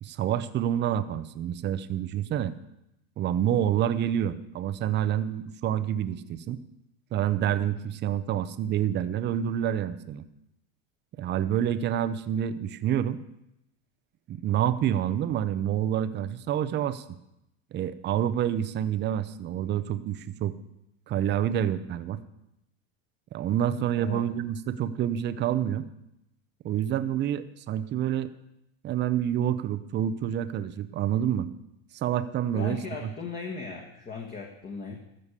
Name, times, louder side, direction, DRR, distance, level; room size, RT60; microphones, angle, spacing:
voice 1, 0.0-2.5 3.2-6.6 7.1-10.3 11.2-13.2 14.3-17.0 17.7-20.5 21.1-22.2 23.3-25.9 26.6-28.3 28.8-31.5 31.9-33.1, right 10 dB, 25° right, 13 dB, 0.7 m, -28 dB
voice 2, 32.5-35.0, left 5 dB, 20° left, 0 dB, 1.6 m, -37 dB
13.0 x 6.9 x 8.2 m, 0.84 s
supercardioid pair, 130°, 40 cm